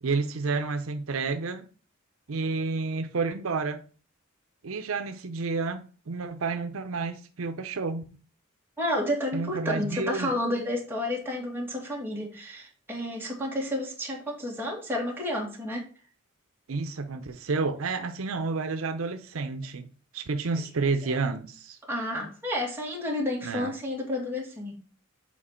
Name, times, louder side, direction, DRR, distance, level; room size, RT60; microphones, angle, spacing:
voice 1, 0.0-1.6 2.3-3.8 4.6-8.0 9.3-10.3 16.7-19.9 20.1-21.8 23.4-23.7, right 4 dB, 80° right, 0.6 m, -30 dB
voice 2, 8.8-15.8 21.0-21.2 21.9-24.7, left 1 dB, 10° right, 2.0 m, -31 dB
7.3 x 4.4 x 4.3 m
head